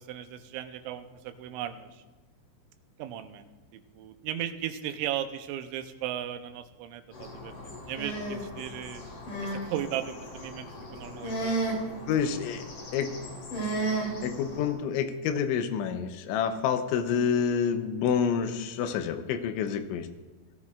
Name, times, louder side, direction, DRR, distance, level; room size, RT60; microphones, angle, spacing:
voice 1, 0.0-2.0 3.0-7.6 7.9-9.0 9.4-11.7, right 11 dB, 85° right, 9 dB, 3.1 m, -36 dB
sound 1, 7.1-14.7, right 2 dB, 50° left, 4.1 m, -35 dB
voice 2, 12.1-12.6 12.9-13.1 14.2-20.1, left 7 dB, 85° left, 8 dB, 3.2 m, -28 dB
19.0 x 13.5 x 2.4 m, 1.2 s
omnidirectional pair, 5.3 m